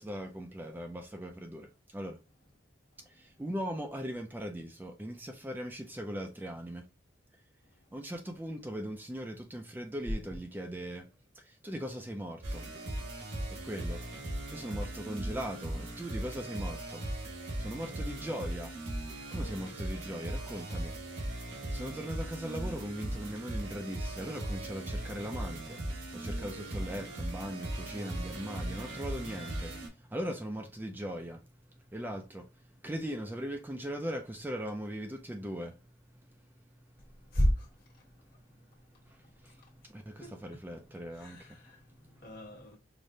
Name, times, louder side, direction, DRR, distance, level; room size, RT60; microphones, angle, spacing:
voice 1, 0.0-2.2 3.1-6.8 7.9-11.1 11.4-12.7 13.6-14.0 14.5-17.0 17.6-18.7 19.3-21.0 21.3-21.4 21.7-31.4 31.9-32.5 32.8-35.8 39.0-39.6 39.9-41.6 42.1-42.3, equal, 10° right, 0.3 m, -39 dB
sound 1, 12.4-29.9, right 1 dB, 85° right, 1.5 m, -38 dB
voice 2, 37.3-37.7 40.2-40.4 41.1-42.8, equal, 55° left, 1.4 m, -32 dB
4.9 x 2.1 x 2.6 m
head